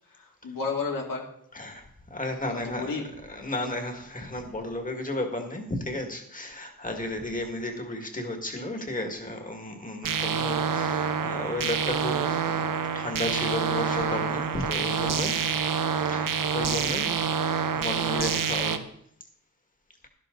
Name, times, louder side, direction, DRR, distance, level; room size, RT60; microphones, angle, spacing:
voice 1, 0.1-1.3 2.4-3.1 3.5-3.7, left 4 dB, 70° left, 0 dB, 2.4 m, -33 dB
voice 2, 2.1-2.8 3.3-12.2 12.5-12.6 13.0-15.4 16.1-17.2 17.7-18.8, left 1 dB, 20° left, 4 dB, 1.8 m, -33 dB
sound 1, 10.0-18.8, right 6 dB, 65° right, 0.8 m, -27 dB
12.5 x 11.5 x 3.8 m, 0.70 s
wide cardioid pair, 165°, 36 cm